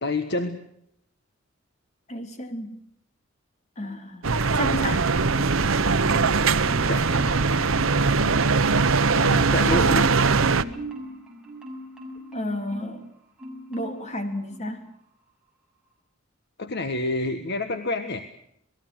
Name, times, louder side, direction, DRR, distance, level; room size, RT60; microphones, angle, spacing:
voice 1, 0.0-0.6 6.9-7.4 9.1-10.1 16.6-18.3, left 2 dB, 55° left, 8 dB, 1.4 m, -28 dB
voice 2, 2.1-2.8 3.8-5.1 12.3-13.0 13.7-14.9, equal, 35° left, 6 dB, 3.4 m, -32 dB
sound 1, 4.2-10.6, right 4 dB, 75° right, 1.0 m, -21 dB
Marimba xylophone, 6.0-7.4 7.7-8.5 8.9-13.0 13.4-14.1 14.5-14.7, equal, 5° right, 6.4 m, -40 dB
27.5 x 19.5 x 6.3 m, 0.73 s
head